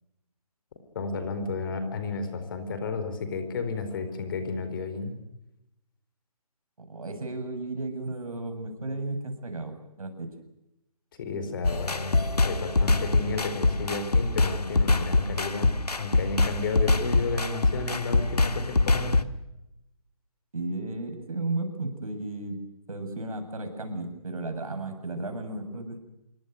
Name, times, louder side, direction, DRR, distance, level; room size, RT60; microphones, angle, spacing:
voice 1, 0.9-5.2 11.2-19.2, left 4 dB, 35° left, 10 dB, 4.5 m, -32 dB
voice 2, 6.8-10.3 20.5-22.6 22.9-26.0, right 2 dB, 60° right, 6 dB, 7.8 m, -34 dB
sound 1, 11.6-19.2, left 3 dB, 80° left, 1.9 m, -24 dB
28.0 x 23.5 x 6.8 m, 0.87 s
figure-of-eight pair, 150°, 20 cm